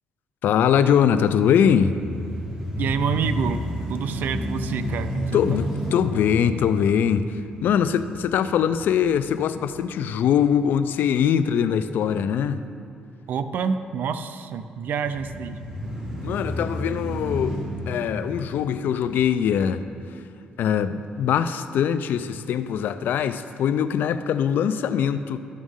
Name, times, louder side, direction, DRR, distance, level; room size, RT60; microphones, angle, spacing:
voice 1, 0.4-2.0 5.3-12.6 16.2-17.6 17.9-19.8 20.6-25.4, left 8 dB, 75° left, 12 dB, 0.4 m, -22 dB
sound 1, 1.7-9.8 10.3-10.4 14.9-19.4, equal, 20° right, 2.3 m, -31 dB
voice 2, 2.8-3.6 3.9-5.4 13.3-15.6, right 6 dB, 70° right, 10 dB, 0.5 m, -27 dB
12.5 x 6.2 x 3.7 m, 2.7 s
cardioid pair, 100°, 3 cm